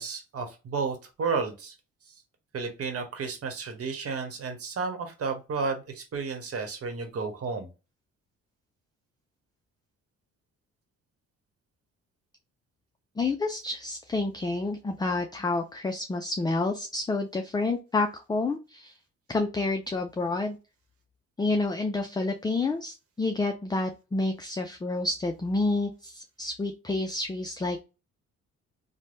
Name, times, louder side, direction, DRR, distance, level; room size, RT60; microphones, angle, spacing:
voice 1, 0.0-1.7 2.5-7.7, right 4 dB, 50° right, 5 dB, 1.1 m, -32 dB
voice 2, 13.2-19.0 19.3-20.6 21.4-27.8, left 2 dB, 15° left, 5 dB, 0.4 m, -29 dB
3.2 x 2.2 x 2.6 m, 0.28 s
cardioid pair, 90°, 30 cm